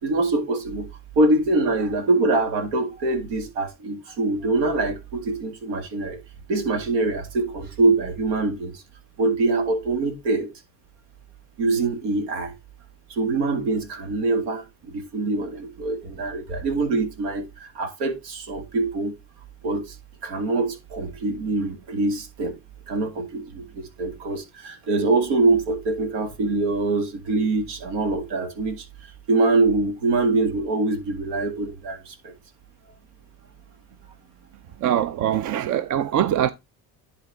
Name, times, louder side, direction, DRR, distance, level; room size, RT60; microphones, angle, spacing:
voice 1, 0.0-0.9 1.2-6.2 6.5-8.8 9.2-10.5 11.6-12.5 13.1-19.1 19.6-20.0 20.2-22.6 22.9-32.3, right 3 dB, 90° right, 1.9 m, -24 dB
voice 2, 34.8-36.5, right 10 dB, 50° right, 0.5 m, -22 dB
10.5 x 3.9 x 3.4 m
cardioid pair, 105°, 40 cm